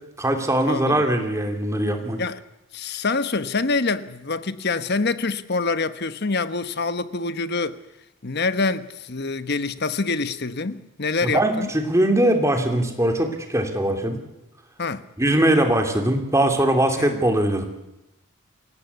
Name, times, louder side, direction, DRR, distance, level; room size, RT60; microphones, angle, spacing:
voice 1, 0.2-2.2 11.2-14.2 15.2-17.6, right 1 dB, 15° right, 2.9 m, -21 dB
voice 2, 2.7-7.8 8.2-11.7 14.8-15.0 17.0-17.2, left 3 dB, 50° left, 1.1 m, -26 dB
29.0 x 17.0 x 8.3 m
head